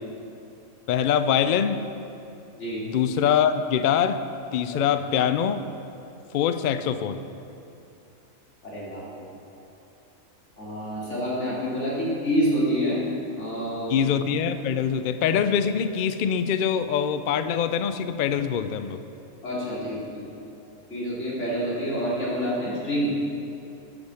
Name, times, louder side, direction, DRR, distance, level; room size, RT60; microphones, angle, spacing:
voice 1, 0.9-1.9 2.8-4.3 4.5-5.6 6.3-7.2 13.9-19.0, left 8 dB, 85° left, 11 dB, 0.4 m, -24 dB
voice 2, 8.6-9.3 10.6-13.0 13.4-14.1 19.4-20.2 20.9-23.1, equal, 60° left, -7 dB, 3.3 m, -27 dB
8.6 x 8.1 x 7.0 m, 2.7 s
omnidirectional pair, 1.4 m